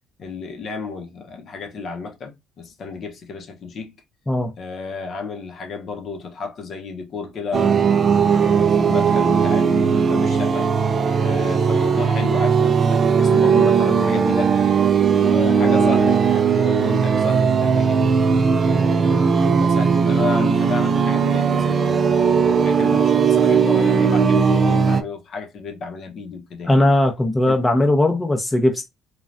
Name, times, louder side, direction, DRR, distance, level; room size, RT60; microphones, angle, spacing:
voice 1, 0.2-3.9 4.6-7.8 8.3-10.7 11.2-14.6 15.1-18.2 18.6-22.0 22.6-26.8 27.5-27.6, left 4 dB, 50° left, 0.7 m, -32 dB
sound 1, 7.5-25.0, right 6 dB, 40° right, 0.4 m, -18 dB
voice 2, 26.6-28.8, left 1 dB, 10° left, 0.6 m, -18 dB
3.2 x 2.3 x 2.5 m
cardioid pair, 115°, 0 cm